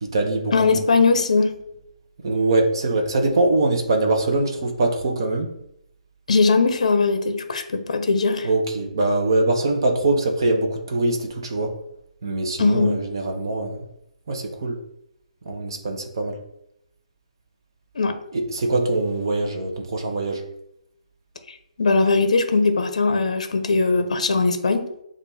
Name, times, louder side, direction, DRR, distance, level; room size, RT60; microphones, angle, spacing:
voice 1, 0.0-0.8 2.2-5.5 8.4-11.7 12.2-13.9 14.3-14.8 15.4-16.4 18.3-20.4, right 2 dB, 35° right, 3 dB, 0.7 m, -23 dB
voice 2, 0.5-1.5 6.3-8.5 12.6-13.0 18.0-18.2 21.8-24.9, left 3 dB, 60° left, 8 dB, 0.6 m, -20 dB
6.6 x 2.5 x 2.7 m, 0.78 s
hypercardioid pair, 180°, 4 cm